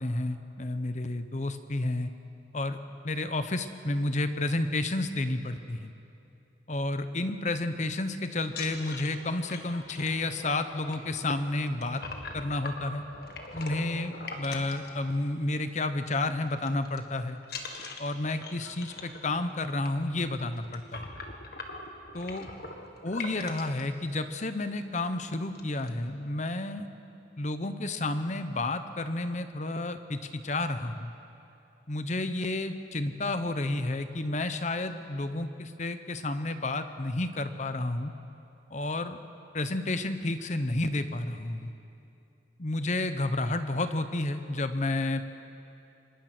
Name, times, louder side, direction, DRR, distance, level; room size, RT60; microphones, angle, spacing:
voice 1, 0.0-2.1 2.5-2.8 3.0-5.9 6.7-12.0 12.3-13.0 13.5-17.4 18.0-21.0 22.1-22.5 23.0-26.9 27.4-31.1 31.9-38.1 38.7-39.2 39.5-41.7 42.6-45.2, left 2 dB, 40° left, 10 dB, 0.9 m, -31 dB
sound 1, 8.4-15.6 15.9-16.2 16.4-17.0 17.4-23.8 24.5-24.6 24.9-25.1 25.3-25.9, left 3 dB, 55° left, 1.9 m, -42 dB
26.0 x 21.0 x 6.1 m, 2.8 s
head